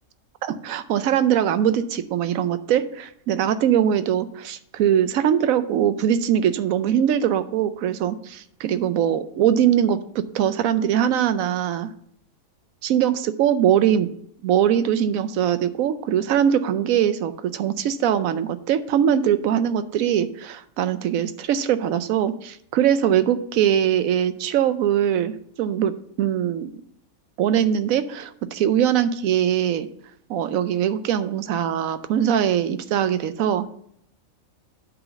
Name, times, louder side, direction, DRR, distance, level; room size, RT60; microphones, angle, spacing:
voice 1, 0.4-11.9 12.8-14.1 14.4-25.9 26.2-26.7 27.4-29.9 30.3-33.7, right 9 dB, 80° right, 12 dB, 1.0 m, -22 dB
8.8 x 3.9 x 7.0 m, 0.69 s
omnidirectional pair, 1.4 m